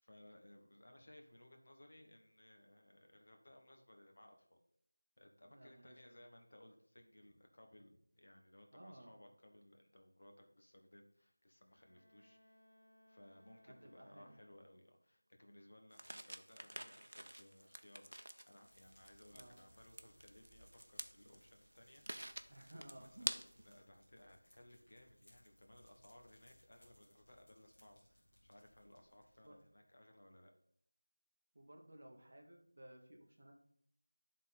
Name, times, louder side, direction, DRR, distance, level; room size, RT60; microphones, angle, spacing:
voice 1, 0.0-4.6 5.2-12.6 13.1-22.0 22.4-23.1 23.6-30.5, left 1 dB, 35° left, 3 dB, 0.7 m, -62 dB
voice 2, 5.5-6.2 8.7-9.1 13.7-14.4 19.3-19.6 22.5-23.3 29.4-29.6 31.5-33.5, right 1 dB, 30° right, 2 dB, 0.8 m, -57 dB
Bowed string instrument, 11.6-15.0, left 1 dB, 75° left, 1.3 m, -69 dB
sound 1, 15.9-23.8, right 1 dB, 85° right, 0.6 m, -49 dB
Fire, 18.6-29.8, equal, 20° left, 1.5 m, -69 dB
10.0 x 3.7 x 4.1 m, 0.68 s
figure-of-eight pair, 180°, 0 cm